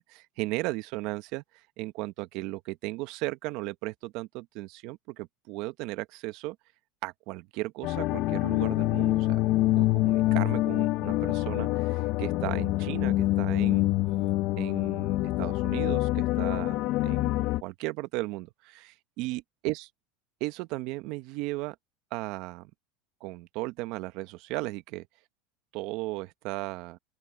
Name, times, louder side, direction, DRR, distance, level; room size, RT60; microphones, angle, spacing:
voice 1, 0.0-6.6 7.0-9.4 9.7-13.9 14.6-19.9 20.4-21.8 22.1-22.7 23.2-25.1 25.7-27.0, right 20 dB, 60° right, 1.0 m, -36 dB
sound 1, 7.8-17.6, left 17 dB, 55° left, 0.9 m, -26 dB
open air
supercardioid pair, 125°, 0 cm